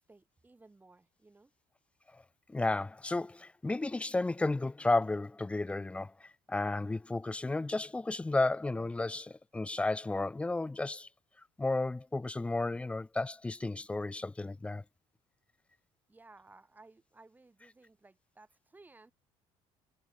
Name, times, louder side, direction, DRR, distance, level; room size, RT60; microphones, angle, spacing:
voice 1, 0.0-1.5 16.1-19.1, right 3 dB, 15° right, 4.1 m, -59 dB
voice 2, 2.5-11.1 11.6-14.8, left 2 dB, 10° left, 0.4 m, -33 dB
cardioid pair, 120°, 12 cm